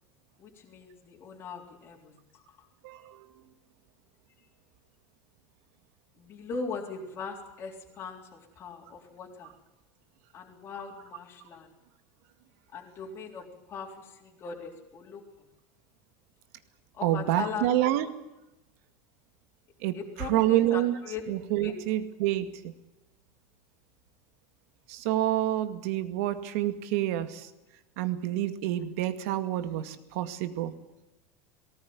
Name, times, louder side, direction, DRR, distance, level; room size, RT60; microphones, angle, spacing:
voice 1, 0.4-2.7 6.2-9.5 10.3-11.7 12.7-15.2 16.9-17.7 19.9-21.2 21.6-21.7, left 5 dB, 30° left, -1 dB, 3.6 m, -40 dB
voice 2, 2.8-3.4 17.0-18.1 19.8-21.0 21.3-22.7 24.9-27.5 28.0-30.8, right 13 dB, 70° right, 10 dB, 2.1 m, -28 dB
18.5 x 18.5 x 9.6 m, 0.95 s
supercardioid pair, 160°, 8 cm